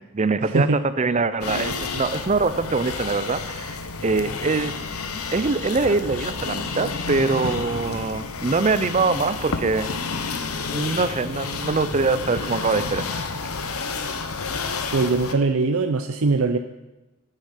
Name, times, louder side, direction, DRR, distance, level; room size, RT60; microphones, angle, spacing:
voice 1, 0.1-3.8 4.0-4.8 5.3-9.9 10.7-13.1, right 3 dB, 30° right, 14 dB, 0.5 m, -23 dB
sound 1, 1.4-15.3, left 4 dB, 90° left, 1.1 m, -30 dB
voice 2, 14.9-16.6, right 3 dB, 75° right, 7 dB, 0.6 m, -21 dB
11.5 x 9.2 x 5.7 m, 1.1 s
head